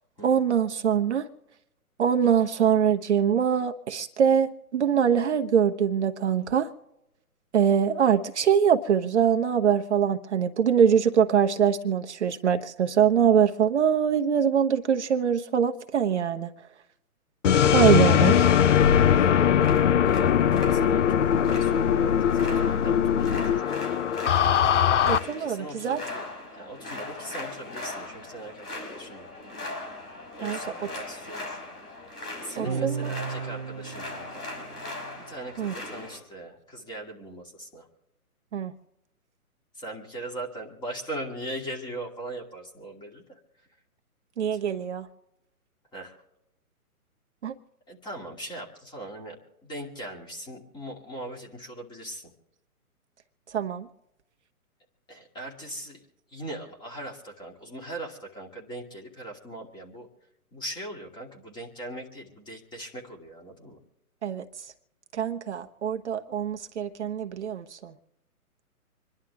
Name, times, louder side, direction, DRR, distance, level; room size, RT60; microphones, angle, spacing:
voice 1, 0.2-1.3 2.0-6.7 7.5-16.5 17.7-18.5 25.0-26.0 30.4-30.6 32.6-33.1 35.6-35.7 38.5-38.7 44.4-45.1 47.4-47.5 53.5-53.9 64.2-64.4 65.1-67.9, right 8 dB, 50° right, 1.0 m, -23 dB
sound 1, 17.4-25.2, left 9 dB, 55° left, 0.7 m, -21 dB
sound 2, 19.1-36.2, left 2 dB, 85° left, 6.1 m, -39 dB
voice 2, 20.0-24.0 25.4-26.2 26.5-29.3 30.4-31.6 32.4-34.4 35.2-37.9 39.7-43.4 44.5-44.6 45.9-46.2 47.9-49.4 49.6-52.3 55.1-56.0 56.3-60.1 60.5-63.8, right 1 dB, 10° left, 2.4 m, -40 dB
sound 3, 32.7-35.3, right 6 dB, 20° right, 0.5 m, -35 dB
27.0 x 11.5 x 3.4 m
hypercardioid pair, 150°, 45 cm